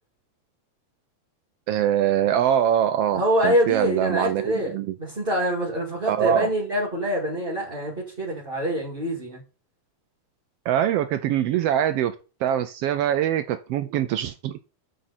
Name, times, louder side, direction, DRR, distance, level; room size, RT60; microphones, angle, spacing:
voice 1, 1.7-4.9 6.1-6.5 10.7-12.1 12.4-14.6, right 10 dB, 80° right, 11 dB, 1.4 m, -23 dB
voice 2, 3.1-9.4, equal, 20° right, -4 dB, 2.3 m, -25 dB
9.1 x 7.5 x 4.3 m, 0.34 s
omnidirectional pair, 3.4 m